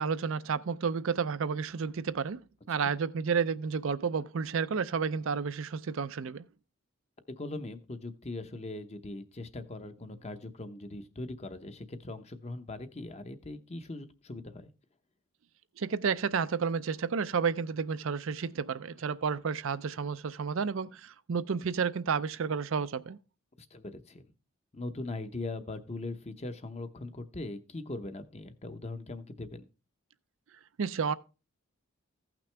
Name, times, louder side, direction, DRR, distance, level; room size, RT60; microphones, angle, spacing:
voice 1, 0.0-2.4 2.7-6.4 15.8-23.2 30.8-31.1, right 6 dB, 60° right, 0.5 m, -31 dB
voice 2, 7.4-14.7 23.6-24.2 24.7-29.6, left 2 dB, 30° left, 0.8 m, -40 dB
15.0 x 6.0 x 3.3 m
head